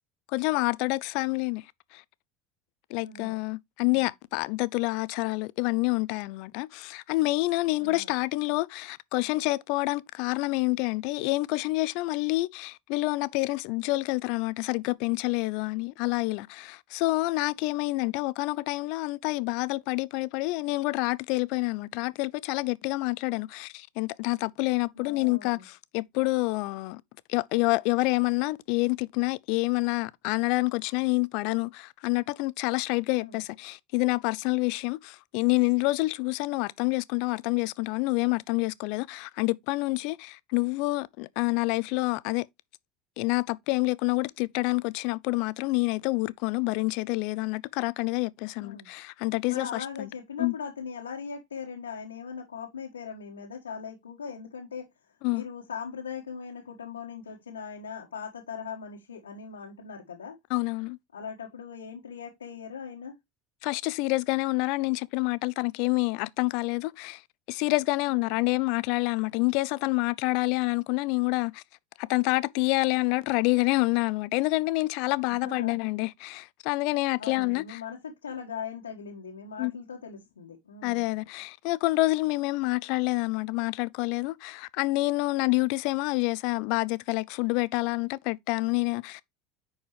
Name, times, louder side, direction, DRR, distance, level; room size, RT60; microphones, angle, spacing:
voice 1, 0.3-1.6 1.9-2.0 2.9-27.0 27.3-42.5 43.2-50.1 50.4-50.5 55.2-55.4 60.5-61.0 63.6-67.2 67.5-71.6 72.0-77.8 79.6-79.7 80.8-89.2, left 23 dB, 60° left, 0.5 m, -28 dB
voice 2, 3.0-3.3 3.8-4.0 7.8-8.1 17.9-18.1 24.9-25.6 33.1-33.4 48.6-48.9 49.5-54.9 55.3-60.4 61.1-63.1 68.1-68.4 75.3-75.8 77.2-81.0, left 6 dB, 90° left, 1.4 m, -40 dB
10.0 x 4.4 x 3.1 m
hypercardioid pair, 75°, 0 cm